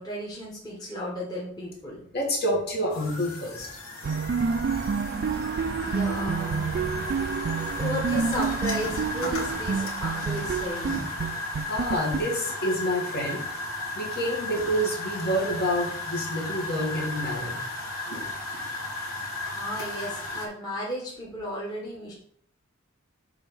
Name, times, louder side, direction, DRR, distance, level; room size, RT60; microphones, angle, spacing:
voice 1, 0.0-2.0 5.8-6.7 7.8-11.1 19.5-22.1, equal, 20° left, -5 dB, 1.5 m, -34 dB
voice 2, 2.1-3.7 11.6-13.4 13.9-17.6, equal, 50° left, -2 dB, 1.9 m, -28 dB
sound 1, 2.9-20.5, left 2 dB, 90° left, 1.9 m, -34 dB
sound 2, 4.0-12.9, right 5 dB, 50° right, 0.3 m, -29 dB
7.0 x 3.5 x 5.6 m, 0.62 s
head